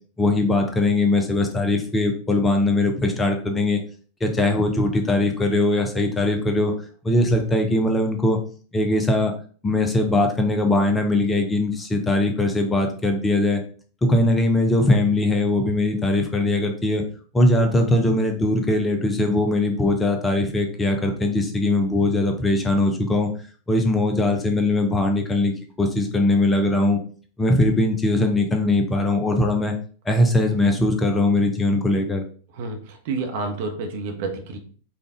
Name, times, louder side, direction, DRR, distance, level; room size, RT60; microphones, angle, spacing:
voice 1, 0.2-3.8 4.2-6.7 7.0-8.4 8.7-9.3 9.6-13.6 14.0-17.0 17.3-23.3 23.7-27.0 27.4-29.7 30.1-32.2, left 2 dB, 15° left, 4 dB, 0.8 m, -20 dB
voice 2, 32.5-34.6, right 3 dB, 50° right, 3 dB, 0.9 m, -29 dB
5.0 x 2.5 x 3.6 m, 0.43 s
figure-of-eight pair, 90°, 0 cm